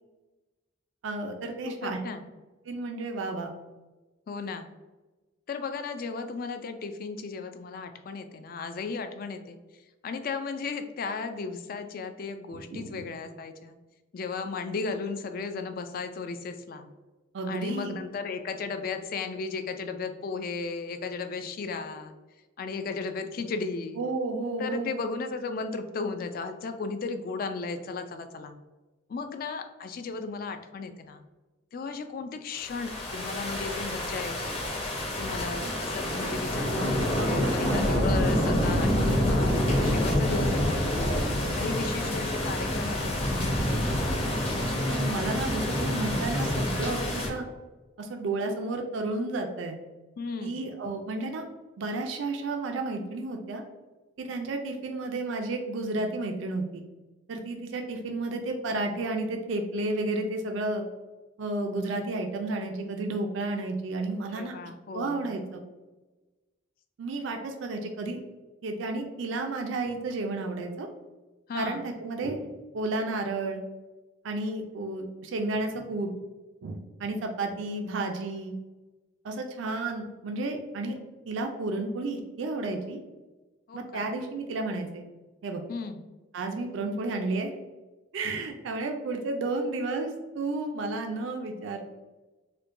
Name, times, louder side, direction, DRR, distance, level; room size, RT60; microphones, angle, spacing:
voice 1, 1.0-2.0 2.7-3.5 12.7-13.0 17.3-17.9 24.0-24.9 35.6-35.7 37.2-38.2 44.9-47.5 48.0-49.8 50.4-51.5 51.8-53.6 54.2-56.8 57.3-60.8 61.4-64.5 64.9-65.6 67.0-68.2 68.6-70.9 71.5-73.6 74.2-76.1 76.6-78.5 79.2-81.0 81.3-83.0 83.7-85.0 85.4-85.6 86.3-87.5 88.1-91.9, right 2 dB, 70° right, 3 dB, 0.4 m, -32 dB
voice 2, 1.7-2.3 4.3-4.7 5.5-9.6 10.0-13.8 14.1-16.9 17.5-22.1 22.6-24.0 24.6-28.5 29.1-31.2 31.7-34.6 35.2-41.2 41.6-44.2 50.2-50.7 64.3-65.3 71.5-71.9 83.7-84.0 85.7-86.0, left 4 dB, 45° left, 8 dB, 0.3 m, -35 dB
sound 1, 32.6-47.3, left 1 dB, 30° left, 0.8 m, -27 dB
4.4 x 2.2 x 2.5 m, 1.2 s
head